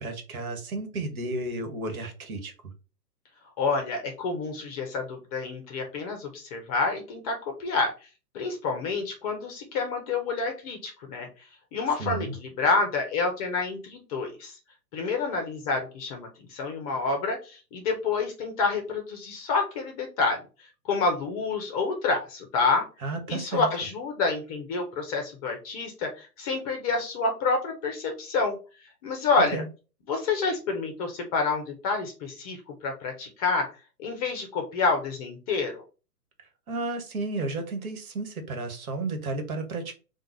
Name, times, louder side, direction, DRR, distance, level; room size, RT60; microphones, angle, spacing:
voice 1, 0.0-2.5 12.0-12.4 23.0-23.7 29.5-29.7 36.7-39.9, right 3 dB, 55° right, 6 dB, 1.4 m, -32 dB
voice 2, 3.6-7.9 8.3-14.6 14.9-22.9 23.3-28.6 29.0-29.6 30.1-33.7 34.0-35.8, left 4 dB, 25° left, 3 dB, 0.7 m, -28 dB
3.8 x 2.3 x 4.5 m, 0.33 s
figure-of-eight pair, 120°, 50 cm